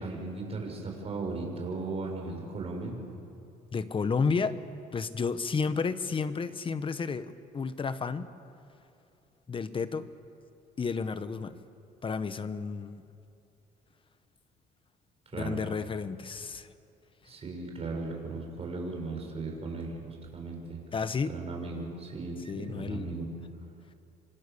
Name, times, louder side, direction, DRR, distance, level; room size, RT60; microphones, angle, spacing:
voice 1, 0.0-3.0 15.3-15.6 17.2-20.8 21.3-23.3, right 3 dB, 35° right, 1 dB, 6.7 m, -37 dB
voice 2, 3.7-4.6 4.9-8.3 9.5-10.1 10.8-11.6 12.0-13.0 15.4-16.7 20.9-21.3 22.5-23.1, left 5 dB, 30° left, 12 dB, 1.3 m, -31 dB
27.0 x 26.0 x 7.1 m, 2.6 s
cardioid pair, 110°, 17 cm